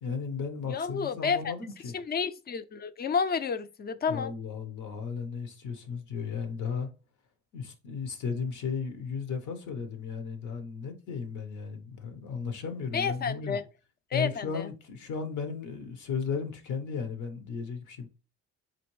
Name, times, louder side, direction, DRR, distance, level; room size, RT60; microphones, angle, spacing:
voice 1, 0.0-1.9 4.1-6.9 7.5-13.6 14.1-18.1, left 5 dB, 75° left, 1.0 m, -35 dB
voice 2, 0.7-1.5 1.9-4.3 12.9-13.6 14.1-14.7, left 6 dB, 35° left, 0.4 m, -30 dB
4.2 x 2.6 x 3.1 m
cardioid pair, 90°, 30 cm